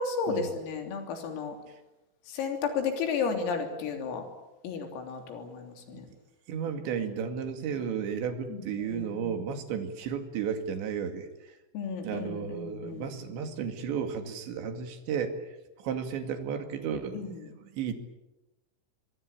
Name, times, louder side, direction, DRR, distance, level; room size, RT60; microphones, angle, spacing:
voice 1, 0.0-1.6 2.3-4.2 4.6-6.1 8.5-9.3 11.7-13.1 17.1-17.4, left 5 dB, 85° left, 4 dB, 5.9 m, -33 dB
voice 2, 6.5-11.6 12.0-17.9, right 7 dB, 65° right, 7 dB, 4.4 m, -34 dB
24.5 x 23.0 x 8.6 m, 0.98 s
omnidirectional pair, 5.9 m